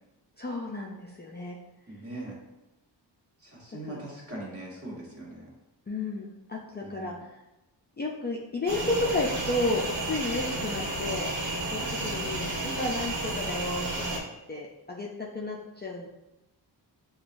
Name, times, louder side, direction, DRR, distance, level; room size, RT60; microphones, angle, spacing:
voice 1, 0.4-1.6 3.8-4.0 5.9-7.3 8.0-11.3 11.7-14.2 14.5-15.1 15.3-16.1, left 2 dB, 25° left, -3 dB, 0.4 m, -32 dB
voice 2, 1.9-2.4 3.4-5.4 6.8-7.1, right 1 dB, 30° right, -4 dB, 1.4 m, -41 dB
sound 1, 8.7-14.2, right 2 dB, 75° right, 1.2 m, -32 dB
6.7 x 2.3 x 2.5 m, 0.98 s
wide cardioid pair, 100°, 43 cm